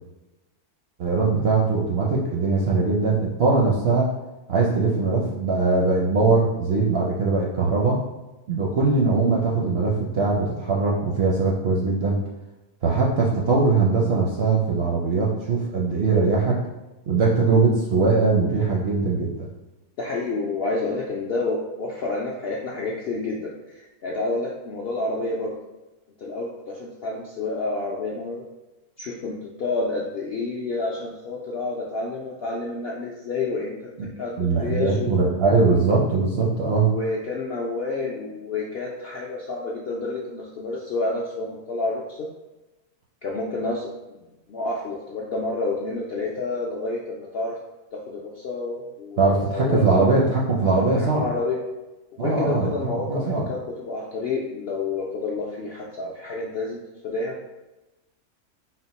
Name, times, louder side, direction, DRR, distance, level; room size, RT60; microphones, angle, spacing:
voice 1, 1.0-4.1 4.5-8.0 8.5-12.2 12.8-16.6 17.1-19.5 34.0-34.1 34.4-36.9 49.2-51.2 52.2-53.5, right 3 dB, 60° right, -4 dB, 0.6 m, -21 dB
voice 2, 20.0-25.5 26.2-28.4 29.0-33.7 34.2-35.3 36.6-42.3 43.2-43.9 44.5-47.5 48.1-49.2 49.5-50.1 50.7-51.6 52.2-57.3, left 3 dB, 65° left, -4 dB, 0.6 m, -29 dB
4.2 x 2.1 x 4.0 m, 1.0 s
omnidirectional pair, 1.6 m